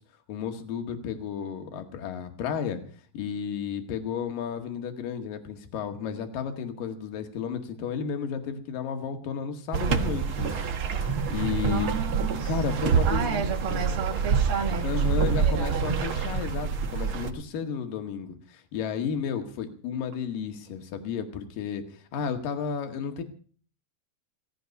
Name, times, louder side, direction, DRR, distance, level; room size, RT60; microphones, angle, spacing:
voice 1, 0.3-2.8 3.1-10.7 11.0-12.0 12.5-13.8 14.8-21.8 22.1-23.2, left 7 dB, 60° left, 3.3 m, -32 dB
sound 1, 9.7-17.3, right 6 dB, 80° right, 1.1 m, -27 dB
voice 2, 11.6-15.9, right 6 dB, 55° right, 1.5 m, -33 dB
17.0 x 14.5 x 5.4 m
omnidirectional pair, 4.7 m